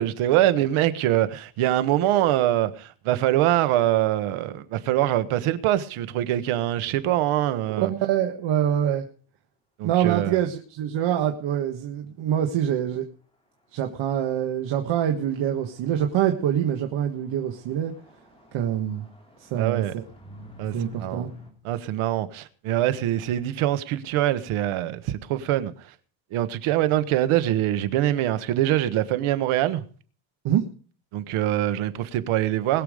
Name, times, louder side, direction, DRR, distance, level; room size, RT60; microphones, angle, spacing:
voice 1, 0.0-7.9 9.8-10.4 19.6-19.9 20.6-21.3 21.6-25.9 26.3-29.8 31.1-32.8, right 13 dB, 85° right, 1.4 m, -24 dB
voice 2, 7.7-9.1 9.8-13.0 13.7-17.9 18.5-19.1 19.4-20.0 20.7-21.3 30.4-30.6, right 10 dB, 65° right, 1.5 m, -25 dB
sound 1, 13.3-13.4 13.6-14.1 14.4-21.5, left 3 dB, 10° left, 3.0 m, -49 dB
21.0 x 7.1 x 5.0 m
cardioid pair, 150°, 48 cm